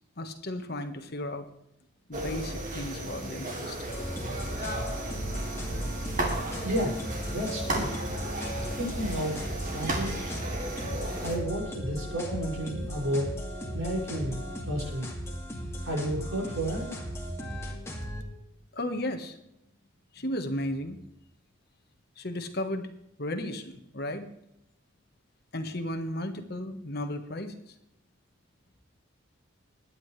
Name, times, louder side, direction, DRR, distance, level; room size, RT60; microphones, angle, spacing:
voice 1, 0.2-1.5 2.1-3.9 18.7-19.4 20.1-21.0 22.2-22.9 23.2-24.3 25.5-27.7, left 1 dB, 50° left, 7 dB, 1.4 m, -34 dB
sound 1, 2.1-11.4, right 1 dB, 40° right, 2.8 m, -34 dB
sound 2, 3.9-18.2, equal, 15° left, 2.3 m, -37 dB
voice 2, 6.6-7.0 7.3-8.0 8.8-10.3 11.2-13.4 13.7-15.1 15.8-16.9, right 1 dB, 85° right, -3 dB, 6.4 m, -32 dB
21.5 x 9.9 x 3.3 m, 0.80 s
head